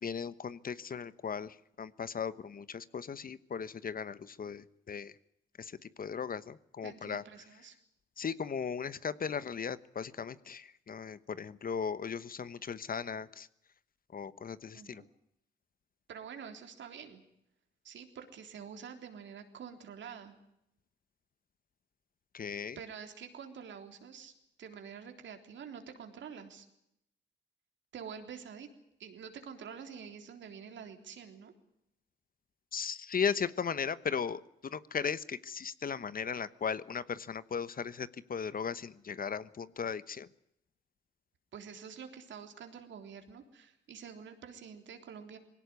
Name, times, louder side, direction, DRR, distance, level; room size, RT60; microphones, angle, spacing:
voice 1, 0.0-5.1 5.6-7.2 8.2-13.5 14.1-15.0 22.3-22.8 32.7-40.3, left 6 dB, 45° left, 16 dB, 1.1 m, -37 dB
voice 2, 6.8-7.8 14.7-15.1 16.1-17.2 17.8-20.4 22.8-26.7 27.9-28.7 29.0-31.5 41.5-45.4, right 7 dB, 70° right, 6 dB, 3.6 m, -47 dB
20.5 x 17.5 x 9.7 m, 0.80 s
supercardioid pair, 60°, 20 cm